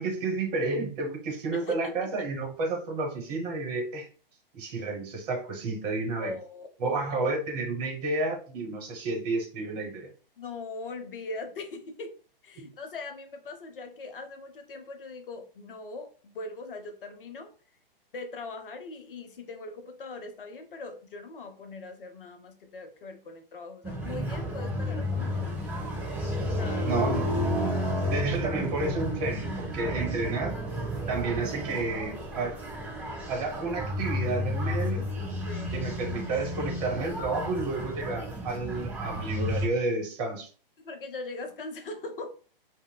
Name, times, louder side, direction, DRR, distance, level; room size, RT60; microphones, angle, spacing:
voice 1, 0.0-4.1 4.5-6.3 6.8-10.1 12.6-12.7 26.9-27.3 28.1-30.6 31.1-32.6 33.3-35.1 35.7-40.5, right 3 dB, 40° right, 2 dB, 1.0 m, -31 dB
voice 2, 1.5-2.1 6.2-7.3 10.4-12.2 12.4-17.5 18.1-25.8 26.5-27.0 35.5-35.8 40.8-42.3, left 3 dB, 65° left, 6 dB, 0.6 m, -40 dB
sound 1, 23.8-39.7, left 1 dB, 5° right, 0.5 m, -32 dB
2.9 x 2.1 x 2.2 m, 0.39 s
figure-of-eight pair, 120°, 29 cm